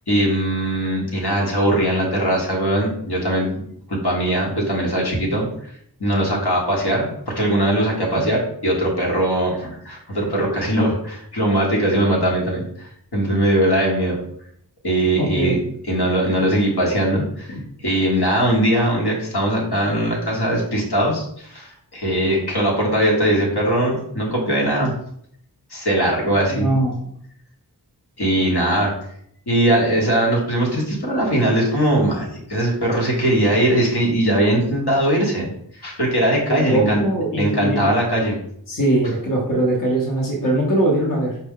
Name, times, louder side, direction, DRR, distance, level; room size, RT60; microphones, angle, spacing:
voice 1, 0.1-3.6 3.9-5.5 6.0-14.2 14.8-15.5 15.9-17.5 17.8-24.9 25.7-26.7 28.2-28.9 29.5-35.5 35.8-37.0 37.3-38.4, right 1 dB, 80° left, -2 dB, 1.1 m, -20 dB
voice 2, 15.2-15.6 17.2-17.3 17.5-17.6 26.5-27.1 36.5-37.8 38.7-41.4, right 1 dB, 55° left, -2 dB, 0.9 m, -21 dB
4.5 x 2.1 x 3.6 m, 0.68 s
wide cardioid pair, 40°, 39 cm